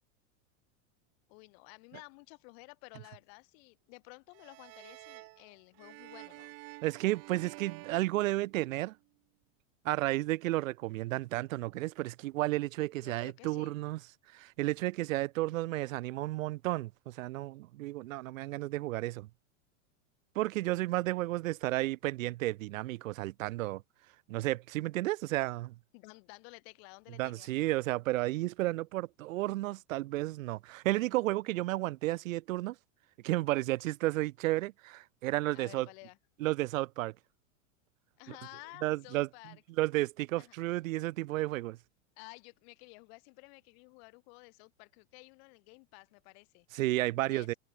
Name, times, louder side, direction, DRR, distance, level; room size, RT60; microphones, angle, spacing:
voice 1, 1.3-6.5 13.0-13.8 25.9-27.5 35.5-36.2 38.2-39.6 40.4-40.5 42.2-46.7 47.2-47.6, left 33 dB, 50° left, 5.5 m, -53 dB
sound 1, 4.3-8.9, right 24 dB, 35° right, 1.7 m, -50 dB
voice 2, 6.8-8.9 9.8-14.0 14.3-19.3 20.3-23.8 24.3-25.7 27.2-32.7 33.2-35.9 36.4-37.1 38.8-39.3 39.8-41.8 46.7-47.5, right 17 dB, 75° right, 0.9 m, -32 dB
supercardioid pair, 160°, 40 cm